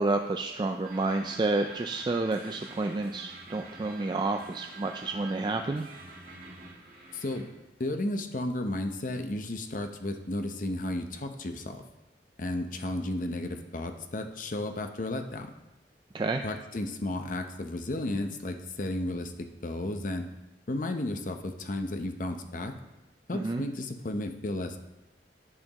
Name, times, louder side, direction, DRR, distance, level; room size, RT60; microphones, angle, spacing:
voice 1, 0.0-5.9 16.1-16.4 23.3-23.6, right 2 dB, 25° right, 5 dB, 0.3 m, -30 dB
sound 1, 0.8-7.4, right 3 dB, 50° right, 1.7 m, -47 dB
voice 2, 7.1-7.5 7.8-11.8 12.4-15.5 16.4-20.3 20.7-22.7 23.3-24.8, left 1 dB, 50° left, 6 dB, 0.7 m, -33 dB
11.0 x 7.6 x 3.0 m, 0.98 s
head